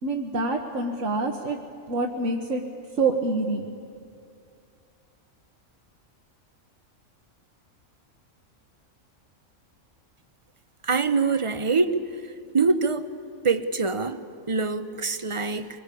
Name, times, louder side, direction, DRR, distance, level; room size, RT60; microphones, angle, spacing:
voice 1, 0.0-1.6 1.9-2.6 3.0-3.7, right 3 dB, 65° right, 1 dB, 1.6 m, -26 dB
voice 2, 10.8-12.0 12.5-13.1 13.4-15.8, right 4 dB, 30° right, 11 dB, 0.8 m, -24 dB
25.0 x 21.5 x 8.4 m, 2.4 s
omnidirectional pair, 1.4 m